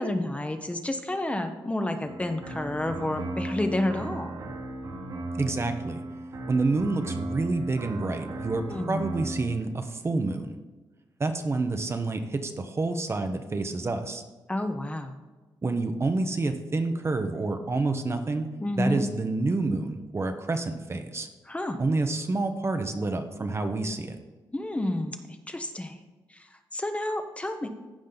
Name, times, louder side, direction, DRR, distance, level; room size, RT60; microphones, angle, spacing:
voice 1, 0.0-4.4 8.7-9.0 14.5-15.2 18.6-19.0 21.5-21.8 24.5-26.0 26.3-27.7, left 1 dB, 15° left, 7 dB, 0.9 m, -30 dB
sound 1, 2.0-9.6, right 1 dB, 55° right, 1.9 m, -36 dB
voice 2, 5.3-6.0 6.5-10.6 11.2-14.2 15.6-18.5 18.8-21.3 21.8-24.2, right 3 dB, 35° right, 7 dB, 1.0 m, -28 dB
15.0 x 5.1 x 4.0 m, 1.2 s
cardioid pair, 75°, 8 cm